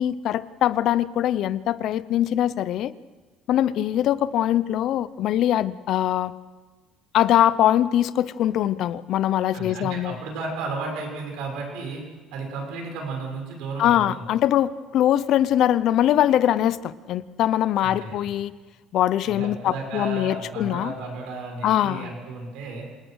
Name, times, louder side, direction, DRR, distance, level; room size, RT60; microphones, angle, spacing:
voice 1, 0.0-2.9 3.5-6.3 7.1-10.2 13.8-18.5 18.9-20.9 21.6-22.1, left 12 dB, 65° left, 17 dB, 0.7 m, -22 dB
voice 2, 9.5-12.0 12.3-14.2 17.8-18.2 19.2-22.9, right 3 dB, 80° right, 2 dB, 6.5 m, -33 dB
27.0 x 19.0 x 6.4 m, 1.4 s
cardioid pair, 100°, 0 cm